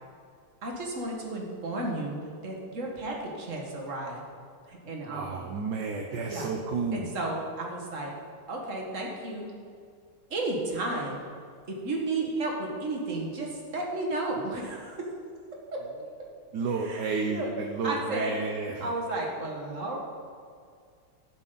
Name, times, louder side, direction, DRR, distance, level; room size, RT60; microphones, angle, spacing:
voice 1, 0.6-4.2 4.7-5.5 6.1-6.5 6.9-8.1 8.5-9.5 10.3-11.2 11.7-15.1 15.7-15.8 16.2-16.3 16.8-17.5 17.8-18.3 18.8-20.0, right 2 dB, 35° right, -1 dB, 1.9 m, -33 dB
voice 2, 5.1-7.1 16.5-18.9, right 4 dB, 65° right, 2 dB, 1.2 m, -31 dB
16.5 x 7.4 x 4.0 m, 2.2 s
omnidirectional pair, 2.4 m